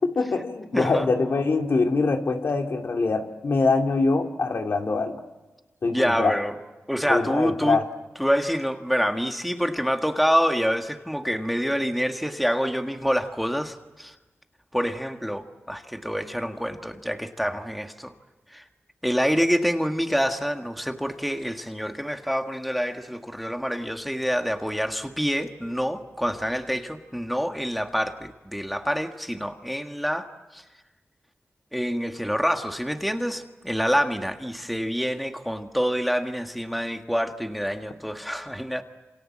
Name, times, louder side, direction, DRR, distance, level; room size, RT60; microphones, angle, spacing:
voice 1, 0.0-5.2 5.8-6.4 7.1-7.8, left 3 dB, 65° left, 4 dB, 2.5 m, -23 dB
voice 2, 0.7-1.1 5.8-6.5 6.9-7.8 8.2-14.1 14.7-18.1 18.5-18.6 19.0-30.6 31.7-38.8, equal, ahead, 5 dB, 1.7 m, -26 dB
28.5 x 28.0 x 7.5 m, 1.1 s
wide cardioid pair, 95°, 4 cm